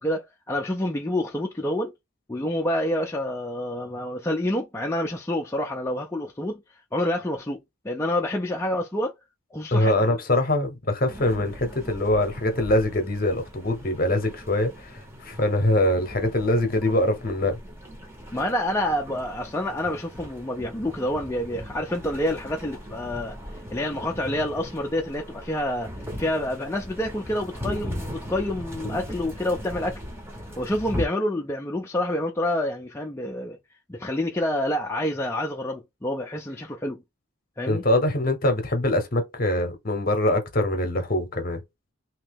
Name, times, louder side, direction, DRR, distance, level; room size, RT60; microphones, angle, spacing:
voice 1, 0.0-1.9 2.3-6.6 6.9-7.6 7.8-9.1 9.5-10.2 18.3-23.4 23.7-25.9 26.2-30.0 30.6-33.6 33.9-37.0 37.6-37.8, left 1 dB, 10° left, 0.4 m, -28 dB
voice 2, 9.7-17.6 37.7-41.6, left 1 dB, 40° left, 0.8 m, -23 dB
sound 1, 11.1-31.1, equal, 10° right, 0.8 m, -38 dB
3.0 x 2.8 x 3.4 m
head